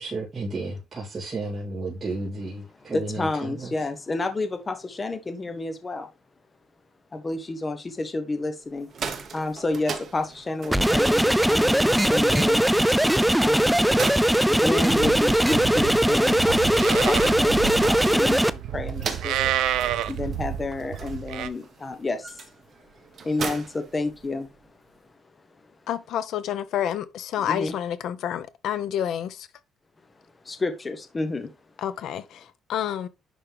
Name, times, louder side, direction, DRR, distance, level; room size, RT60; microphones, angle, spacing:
voice 1, 0.0-3.7, right 2 dB, 25° right, 2.8 m, -32 dB
voice 2, 2.9-6.1 7.1-8.9 9.3-12.7 13.4-13.8 14.5-19.5 20.1-22.5 23.2-24.6 27.5-27.7 30.4-31.5, left 2 dB, 20° left, 0.9 m, -30 dB
sound 1, 8.7-24.7, right 6 dB, 45° right, 1.1 m, -39 dB
sound 2, 10.7-18.5, right 1 dB, 5° right, 0.4 m, -20 dB
Livestock farm animals working animals, 14.9-21.5, right 11 dB, 90° right, 0.6 m, -30 dB
voice 3, 25.9-29.5 31.8-33.1, left 10 dB, 70° left, 0.7 m, -29 dB
10.5 x 3.7 x 3.4 m
cardioid pair, 145°, 0 cm